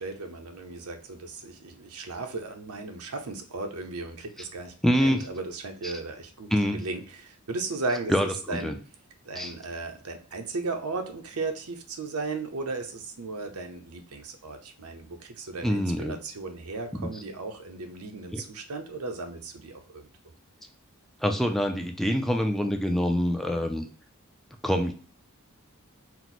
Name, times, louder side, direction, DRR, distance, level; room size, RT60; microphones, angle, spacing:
voice 1, 0.0-4.7 5.0-8.7 9.3-20.1, right 3 dB, 85° right, 5 dB, 0.7 m, -36 dB
voice 2, 4.8-5.3 5.8-5.9 6.5-6.8 8.1-8.8 9.4-9.5 15.6-16.2 17.0-17.1 18.3-18.4 21.2-23.9 24.6-24.9, equal, ahead, 4 dB, 0.3 m, -25 dB
4.4 x 2.1 x 4.0 m, 0.40 s
head